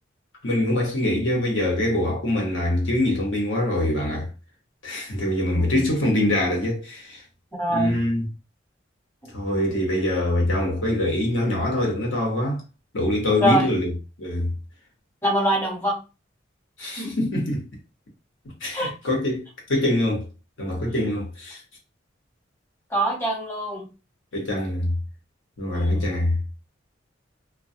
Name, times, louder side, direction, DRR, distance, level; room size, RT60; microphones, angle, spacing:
voice 1, 0.4-4.3 4.8-7.2 7.7-8.2 9.3-12.6 12.9-13.9 14.2-14.5 16.8-17.7 18.6-20.3 20.6-21.6 24.3-24.9 25.6-26.4, left 1 dB, 80° left, 0.9 m, -24 dB
voice 2, 5.5-5.8 7.6-7.9 13.4-13.7 15.2-16.0 17.0-17.1 18.7-18.9 22.9-23.9 25.7-26.1, right 1 dB, 15° left, 0.8 m, -24 dB
2.2 x 2.1 x 2.6 m
head